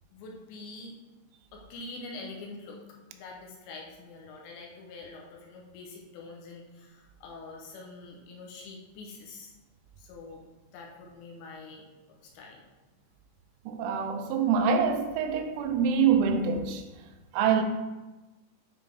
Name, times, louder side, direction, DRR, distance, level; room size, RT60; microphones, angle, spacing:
voice 1, 0.1-1.0 1.5-2.8 3.1-9.5 10.0-10.4 10.7-12.6, left 3 dB, 80° left, 2.9 m, -45 dB
voice 2, 13.7-16.8 17.3-17.6, right 6 dB, 85° right, 3.1 m, -25 dB
9.7 x 3.4 x 3.3 m
omnidirectional pair, 5.5 m